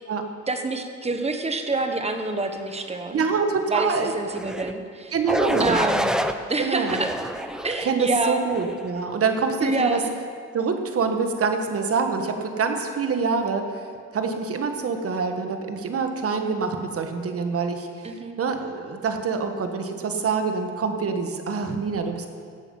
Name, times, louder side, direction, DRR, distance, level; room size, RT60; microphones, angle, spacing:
voice 1, 0.5-3.2 3.7-5.1 5.6-6.2 6.5-7.1 7.6-8.4 9.6-10.1 18.0-18.4, right 2 dB, 20° right, 6 dB, 1.3 m, -27 dB
voice 2, 3.1-4.1 5.1-5.8 6.6-7.0 7.8-10.0 10.5-13.8 14.1-22.3, right 5 dB, 50° right, 6 dB, 1.4 m, -25 dB
sound 1, 4.3-4.7 5.3-6.3 6.9-7.9 8.5-8.9, equal, ahead, 0.6 m, -26 dB
17.0 x 7.1 x 5.6 m, 2.2 s
cardioid pair, 90°, 30 cm